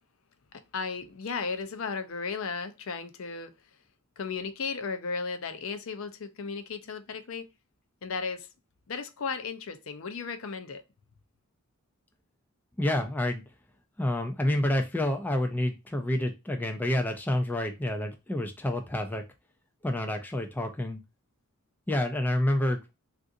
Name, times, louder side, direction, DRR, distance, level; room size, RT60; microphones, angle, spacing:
voice 1, 0.7-3.5 4.2-7.5 8.0-8.5 8.9-10.8, left 5 dB, 65° left, 0.5 m, -35 dB
voice 2, 12.8-13.4 14.0-19.2 19.8-21.0 21.9-22.9, left 1 dB, 10° left, 0.3 m, -28 dB
3.7 x 2.5 x 2.5 m
head